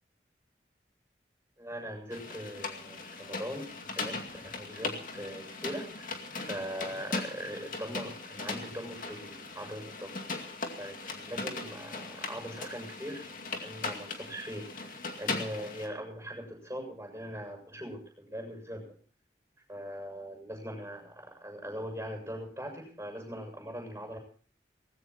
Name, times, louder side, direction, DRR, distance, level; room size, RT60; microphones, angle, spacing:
voice 1, 1.6-10.2 10.8-13.3 13.5-19.0 19.7-24.2, equal, 15° right, 2 dB, 7.0 m, -41 dB
sound 1, 2.1-15.9, left 3 dB, 50° left, 2.3 m, -39 dB
18.5 x 16.0 x 4.1 m, 0.44 s
head